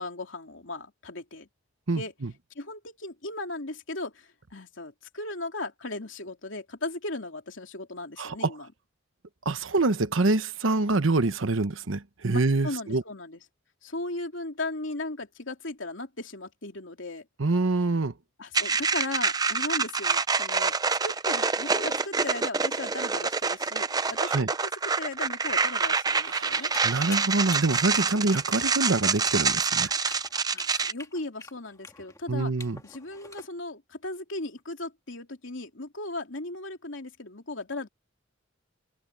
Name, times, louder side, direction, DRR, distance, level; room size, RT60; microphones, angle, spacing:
voice 1, 0.0-1.5 1.9-2.1 2.5-8.7 11.6-11.7 12.3-13.4 13.8-17.3 18.4-20.7 21.0-26.7 30.5-32.5 32.8-37.9, left 2 dB, 70° left, 3.2 m, -37 dB
voice 2, 1.9-2.3 8.2-8.3 9.4-13.0 17.4-18.1 24.2-24.5 26.2-29.9 32.3-32.8, right 2 dB, 80° right, 1.0 m, -26 dB
sound 1, 18.5-30.9, right 5 dB, 20° right, 0.6 m, -26 dB
sound 2, 26.3-33.5, left 3 dB, 15° left, 1.9 m, -44 dB
head